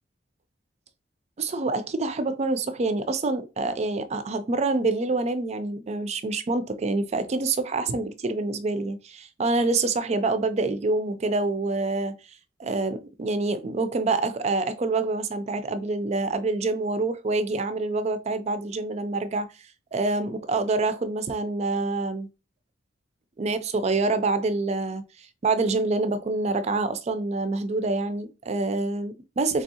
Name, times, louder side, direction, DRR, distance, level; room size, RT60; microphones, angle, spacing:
voice 1, 1.4-12.1 12.6-19.5 19.9-22.3 23.4-29.6, right 3 dB, 35° right, 0.4 m, -26 dB
3.5 x 3.3 x 2.7 m
head